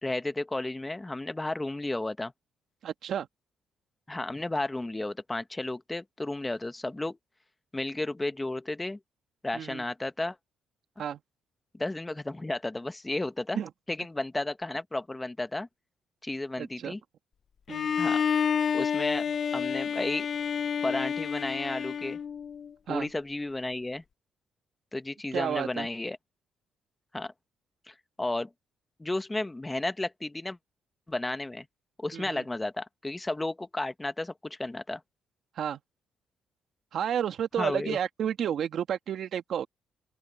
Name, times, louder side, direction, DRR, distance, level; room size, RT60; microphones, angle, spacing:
voice 1, 0.0-2.3 4.1-7.2 7.7-9.0 9.4-10.4 11.8-13.6 13.9-15.7 16.2-17.0 18.0-18.2 18.7-19.3 19.5-20.3 20.8-22.2 22.9-24.0 24.9-26.2 27.1-27.3 27.9-28.5 29.0-30.6 31.1-31.6 32.0-35.0 37.6-38.0, left 2 dB, 15° left, 1.3 m, -33 dB
voice 2, 2.8-3.3 9.5-9.8 11.0-11.2 13.5-13.7 16.6-17.0 17.7-18.0 22.9-23.1 25.3-25.9 32.1-32.4 35.6-35.8 36.9-39.7, right 9 dB, 65° right, 1.6 m, -31 dB
Bowed string instrument, 17.7-22.7, left 7 dB, 50° left, 0.6 m, -29 dB
open air
cardioid pair, 90°, 0 cm